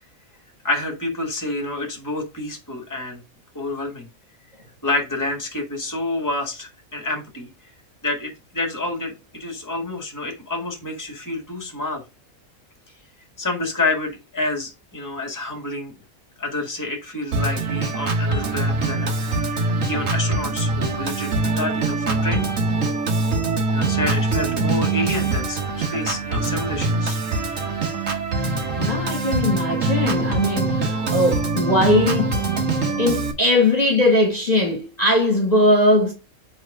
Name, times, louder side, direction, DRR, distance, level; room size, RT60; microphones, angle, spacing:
voice 1, 0.6-3.2 3.5-4.1 4.8-7.7 8.0-12.0 13.4-15.9 16.4-19.1 19.9-22.5 23.7-27.2, left 2 dB, 15° left, 1.9 m, -28 dB
Organ, 17.3-33.3, right 3 dB, 60° right, 1.8 m, -23 dB
voice 2, 28.8-32.4 33.0-36.1, left 1 dB, 30° left, 2.0 m, -19 dB
8.0 x 3.7 x 4.9 m
omnidirectional pair, 1.5 m